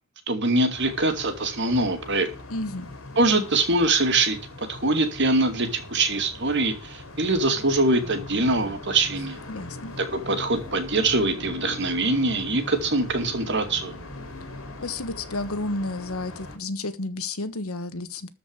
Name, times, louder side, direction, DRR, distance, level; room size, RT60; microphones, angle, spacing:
voice 1, 0.3-2.3 3.2-9.4 10.0-13.9, right 2 dB, 55° right, 2.5 m, -23 dB
sound 1, 0.7-16.6, left 2 dB, 75° left, 3.5 m, -40 dB
voice 2, 2.5-2.9 9.5-9.9 14.8-18.3, left 2 dB, 90° left, 1.4 m, -31 dB
13.5 x 5.2 x 8.1 m
head